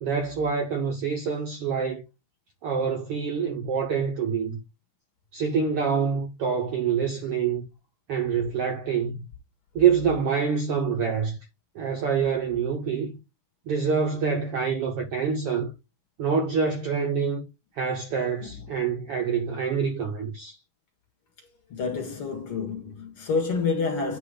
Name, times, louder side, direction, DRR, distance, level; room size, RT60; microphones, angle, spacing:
voice 1, 0.0-2.0 2.6-4.6 5.3-7.7 8.1-9.2 9.7-11.4 11.7-13.1 13.7-15.7 16.2-17.5 17.8-20.6, right 6 dB, 65° right, 1.5 m, -26 dB
voice 2, 21.7-24.2, left 4 dB, 50° left, 2.3 m, -28 dB
9.2 x 3.1 x 4.9 m
omnidirectional pair, 3.7 m